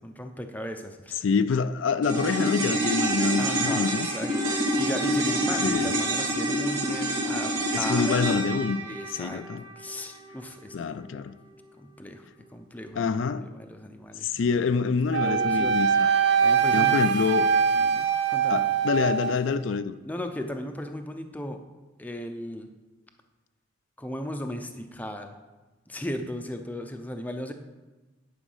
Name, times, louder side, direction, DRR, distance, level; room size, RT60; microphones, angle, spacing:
voice 1, 0.0-1.2 3.4-8.2 8.8-9.4 9.8-10.8 12.0-12.3 12.5-13.1 13.4-14.4 15.2-15.8 16.4-17.1 17.7-18.6 20.0-21.6 22.0-22.7 24.0-25.4 25.9-27.5, left 1 dB, 10° left, 0.6 m, -36 dB
voice 2, 1.2-4.1 5.6-5.9 7.7-9.6 10.7-11.3 13.0-13.5 14.2-16.1 16.7-17.5 18.5-19.9, left 5 dB, 65° left, 0.4 m, -26 dB
sound 1, 2.0-10.5 10.8-10.9, right 1 dB, 85° right, 2.6 m, -27 dB
Wind instrument woodwind instrument, 15.1-19.4, right 6 dB, 55° right, 0.5 m, -23 dB
10.0 x 5.0 x 5.5 m
head